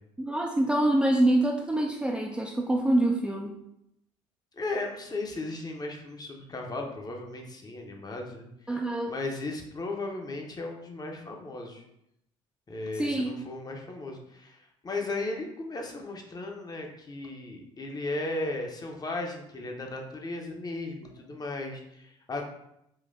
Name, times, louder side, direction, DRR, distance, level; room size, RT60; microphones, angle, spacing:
voice 1, 0.2-3.5 8.7-9.1 12.9-13.3, right 1 dB, 5° right, -1 dB, 0.4 m, -25 dB
voice 2, 4.5-8.5 9.1-11.8 12.7-22.5, left 2 dB, 25° left, 1 dB, 0.7 m, -36 dB
3.8 x 2.5 x 2.5 m, 0.78 s
hypercardioid pair, 55°, 16 cm